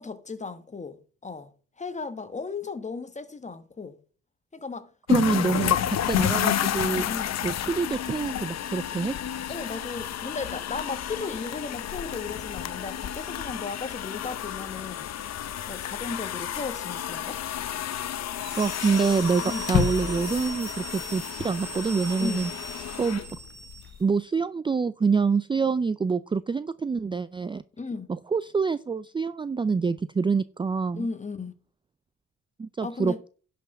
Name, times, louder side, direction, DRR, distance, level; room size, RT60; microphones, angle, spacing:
voice 1, 0.0-1.5 1.8-4.0 4.5-4.9 5.4-5.5 6.8-7.3 9.5-15.1 15.7-17.4 19.4-19.6 22.2-22.5 27.8-28.1 30.9-31.5 32.8-33.2, left 4 dB, 25° left, 1.3 m, -35 dB
sound 1, 5.1-24.0, left 10 dB, 60° left, 0.8 m, -31 dB
voice 2, 5.1-7.1 7.4-9.2 18.6-22.5 23.0-23.2 24.0-27.6 28.1-31.1 32.6-33.3, right 5 dB, 15° right, 0.4 m, -26 dB
sound 2, 18.3-24.0, right 4 dB, 35° right, 2.4 m, -40 dB
11.0 x 6.0 x 5.4 m
cardioid pair, 90°, 30 cm